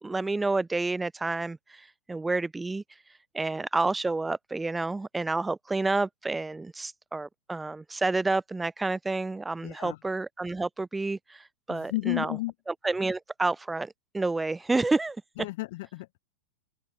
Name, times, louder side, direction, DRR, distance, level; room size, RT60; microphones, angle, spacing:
voice 1, 0.0-2.8 3.3-12.4 12.7-15.2, right 3 dB, 10° right, 1.3 m, -29 dB
voice 2, 9.6-10.0 11.7-12.5 15.4-16.1, left 20 dB, 55° left, 1.3 m, -32 dB
open air
figure-of-eight pair, 95°, 0 cm